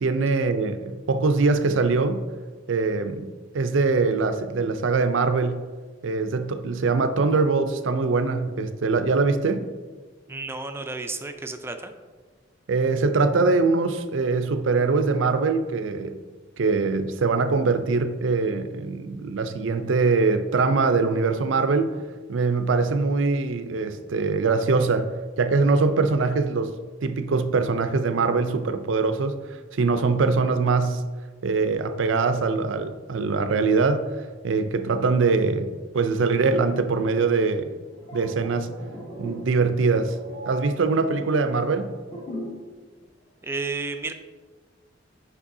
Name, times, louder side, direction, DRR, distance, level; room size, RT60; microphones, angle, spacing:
voice 1, 0.0-2.3 2.7-5.6 6.0-9.7 12.7-16.2 16.6-21.9 22.3-25.1 25.4-26.7 27.0-29.3 29.7-31.0 31.4-34.1 34.4-37.7 38.1-38.7 39.2-40.2 40.4-41.9, right 4 dB, 80° right, 10 dB, 0.5 m, -23 dB
voice 2, 10.3-11.9 43.4-44.1, right 3 dB, 15° right, 6 dB, 0.4 m, -32 dB
sound 1, 37.8-42.7 43.0-43.2, equal, 45° left, 1.5 m, -39 dB
8.5 x 5.4 x 2.7 m, 1.4 s
head